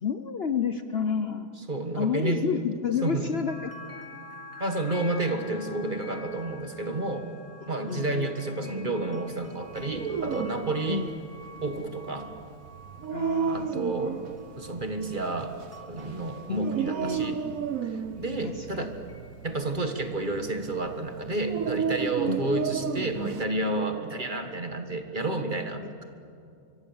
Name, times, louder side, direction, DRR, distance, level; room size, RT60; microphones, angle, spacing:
voice 1, 0.0-1.5 1.9-3.7 7.6-8.3 10.9-11.1 13.1-14.1 16.5-17.6 18.4-18.9 22.2-22.4 25.8-26.0, left 6 dB, 50° left, 9 dB, 0.9 m, -31 dB
voice 2, 1.7-2.4 3.0-3.3 4.6-7.3 7.7-11.0 11.6-12.3 13.4-14.2 14.6-15.6 15.9-17.4 17.8-19.0 19.4-26.0, right 2 dB, 35° right, 6 dB, 1.7 m, -30 dB
sound 1, 3.5-18.6 19.1-19.4, left 2 dB, 10° right, 2.1 m, -48 dB
Dog, 9.7-23.4, right 7 dB, 65° right, 1.4 m, -33 dB
25.5 x 23.5 x 7.2 m, 2.5 s
omnidirectional pair, 1.6 m